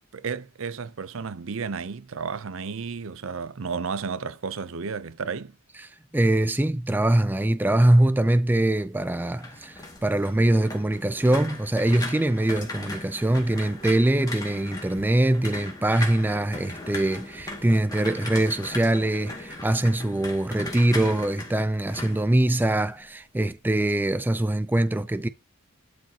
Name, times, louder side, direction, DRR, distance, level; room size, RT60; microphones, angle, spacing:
voice 1, 0.1-5.5, right 5 dB, 70° right, 0.6 m, -32 dB
voice 2, 5.8-25.3, right 1 dB, 10° right, 0.3 m, -23 dB
sound 1, 9.0-23.1 23.4-23.7, left 2 dB, 15° left, 2.0 m, -38 dB
11.5 x 4.9 x 2.9 m
head